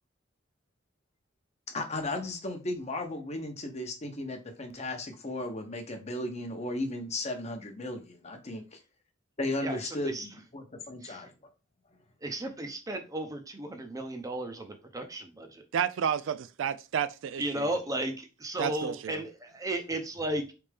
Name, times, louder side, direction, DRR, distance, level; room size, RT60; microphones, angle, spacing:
voice 1, 1.7-8.8 9.4-11.3, left 2 dB, 35° left, 0.8 m, -35 dB
voice 2, 9.6-10.3 11.0-11.3 12.2-15.6 17.4-20.5, right 1 dB, 20° right, 0.7 m, -35 dB
voice 3, 15.7-17.7 18.6-19.2, right 8 dB, 80° right, 0.3 m, -31 dB
4.1 x 3.4 x 3.3 m
head